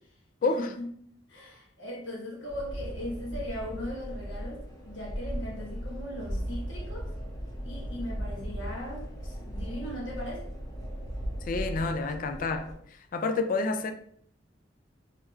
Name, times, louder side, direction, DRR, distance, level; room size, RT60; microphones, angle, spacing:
voice 1, 0.5-0.9 1.3-7.1 7.6-10.5, left 1 dB, 75° left, 1.3 m, -38 dB
sound 1, 2.5-12.7, equal, 20° left, 0.7 m, -37 dB
voice 2, 11.5-12.7 13.1-13.9, left 3 dB, 45° left, 0.3 m, -28 dB
4.5 x 3.2 x 2.4 m
head